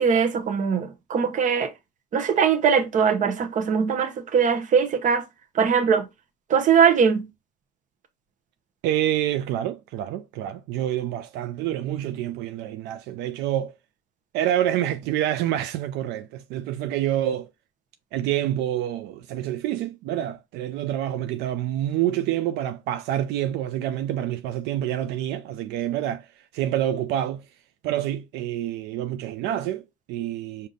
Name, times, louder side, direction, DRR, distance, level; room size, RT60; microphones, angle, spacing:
voice 1, 0.0-1.7 2.1-5.2 5.5-6.0 6.5-7.3, right 6 dB, 50° right, 0.9 m, -21 dB
voice 2, 8.8-13.7 14.3-17.5 18.1-26.3 26.5-27.4 27.8-30.7, right 12 dB, 90° right, 0.4 m, -27 dB
5.1 x 2.7 x 3.9 m
cardioid pair, 110°, 17 cm